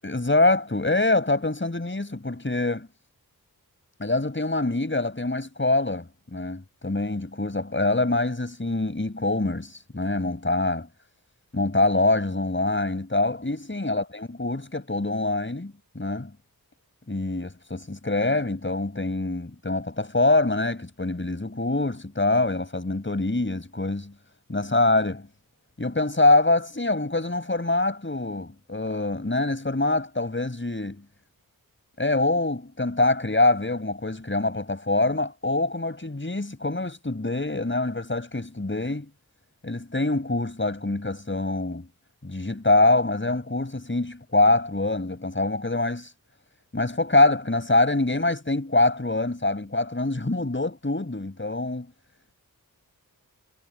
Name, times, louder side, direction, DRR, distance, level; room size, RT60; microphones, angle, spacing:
voice 1, 0.0-2.9 4.0-10.9 11.5-16.3 17.1-24.1 24.5-25.3 25.8-31.0 32.0-39.1 39.6-41.9 42.2-46.1 46.7-51.9, left 2 dB, 30° left, 7.3 m, -24 dB
wide cardioid pair, 90°, 36 cm